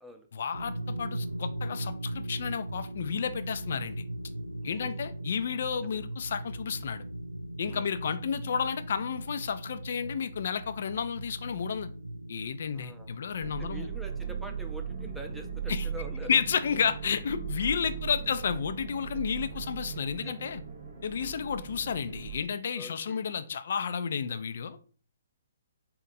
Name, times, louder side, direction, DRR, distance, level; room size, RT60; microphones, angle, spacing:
voice 1, 0.3-4.0 4.6-7.0 7.6-11.9 12.3-13.9 15.7-15.9 16.3-20.6 21.0-24.9, left 7 dB, 55° left, 0.3 m, -31 dB
sound 1, 0.5-20.0, right 1 dB, 90° right, 0.3 m, -40 dB
voice 2, 4.6-5.3 5.8-6.0 7.7-7.9 12.7-13.1 13.6-16.4 20.2-20.3 21.2-21.5 22.7-23.3, equal, 5° right, 0.5 m, -46 dB
sound 2, 13.4-22.4, right 8 dB, 45° right, 0.7 m, -39 dB
4.2 x 2.1 x 4.0 m
figure-of-eight pair, 130°, 0 cm